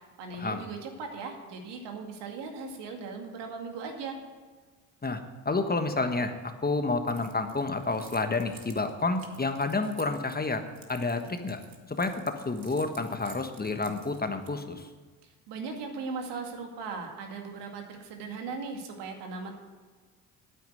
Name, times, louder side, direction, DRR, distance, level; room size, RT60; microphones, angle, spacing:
voice 1, 0.2-4.2 15.2-19.5, right 4 dB, 75° right, 3 dB, 2.2 m, -38 dB
voice 2, 5.0-10.6 10.9-11.6 11.9-14.9, left 3 dB, 20° left, 7 dB, 1.3 m, -30 dB
Keys jangling, 7.1-14.8, right 6 dB, 50° right, 2.0 m, -53 dB
9.3 x 9.1 x 7.8 m, 1.4 s
supercardioid pair, 65°, 43 cm